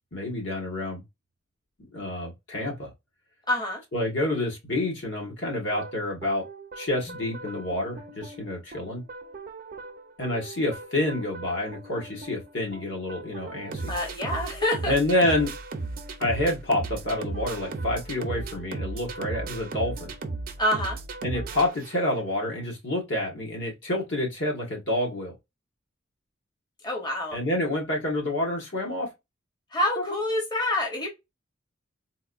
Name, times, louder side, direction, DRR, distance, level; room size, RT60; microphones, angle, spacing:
voice 1, 0.1-1.0 1.9-2.9 3.9-6.4 6.8-9.0 10.2-13.9 14.9-15.5 16.2-20.1 21.2-25.3 27.3-29.1, left 1 dB, 65° left, 1.6 m, -28 dB
voice 2, 3.5-3.8 13.9-14.9 20.6-21.0 26.8-27.4 29.7-31.1, left 1 dB, 20° left, 0.9 m, -27 dB
sound 1, 5.7-22.4, right 3 dB, 50° right, 0.6 m, -37 dB
4.0 x 2.6 x 2.5 m
head